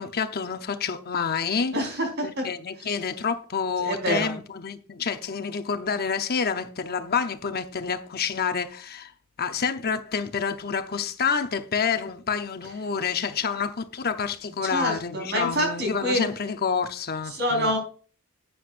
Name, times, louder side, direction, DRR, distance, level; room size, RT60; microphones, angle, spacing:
voice 1, 0.0-1.7 2.2-9.1 9.4-17.7, left 6 dB, 45° left, 0.8 m, -28 dB
voice 2, 1.7-2.5 3.8-4.3 14.7-16.2 17.3-17.8, equal, 50° right, 4.5 m, -26 dB
11.5 x 9.4 x 2.5 m
head